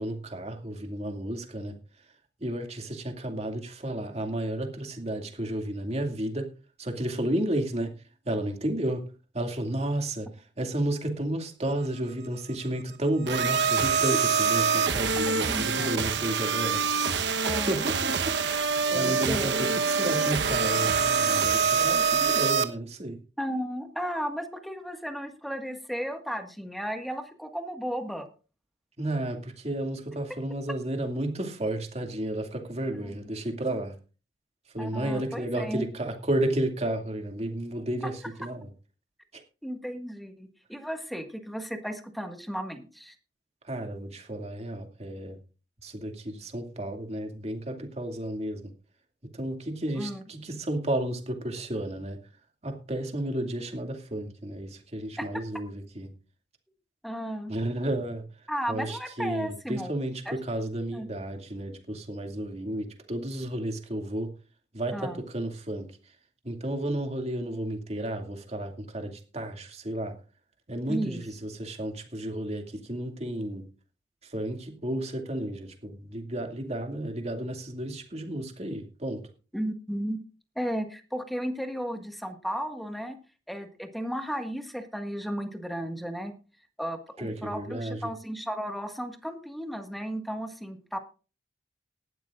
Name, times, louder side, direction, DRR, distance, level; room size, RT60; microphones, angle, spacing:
voice 1, 0.0-1.8 2.4-6.5 6.8-7.9 8.2-9.0 9.3-16.8 17.4-23.2 29.0-34.0 34.7-38.7 39.3-39.4 43.6-45.4 45.8-48.7 49.2-52.2 52.6-56.1 57.5-58.3 58.7-64.3 64.7-66.0 66.4-70.1 70.7-73.7 74.2-79.2 87.2-88.1, right 1 dB, 35° right, 4 dB, 2.4 m, -32 dB
sound 1, 13.3-22.6, right 6 dB, 70° right, 1.1 m, -25 dB
voice 2, 15.3-15.9 17.4-17.8 18.9-19.7 23.4-28.3 32.9-33.1 34.8-35.9 39.6-43.1 50.0-50.2 55.2-55.3 57.0-57.6 58.5-59.9 60.2-60.3 60.9-61.1 64.9-65.2 70.9-71.2 79.5-80.2 80.5-83.2 83.5-86.3 86.8-91.0, equal, ahead, 6 dB, 1.7 m, -34 dB
18.5 x 12.5 x 2.5 m, 0.35 s
head